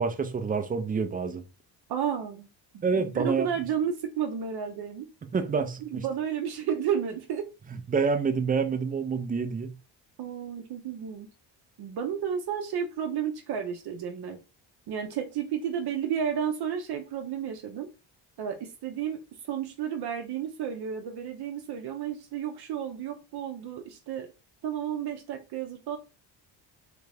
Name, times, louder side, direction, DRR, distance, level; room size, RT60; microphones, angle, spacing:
voice 1, 0.0-1.4 2.8-3.5 5.3-6.0 7.9-9.7, right 5 dB, 20° right, 0.4 m, -27 dB
voice 2, 1.9-2.5 2.7-5.1 5.9-7.5 10.2-11.3 11.8-14.4 14.9-17.9 18.4-24.3 24.6-26.0, right 8 dB, 55° right, 0.7 m, -32 dB
3.4 x 2.5 x 3.2 m
cardioid pair, 105°, 46 cm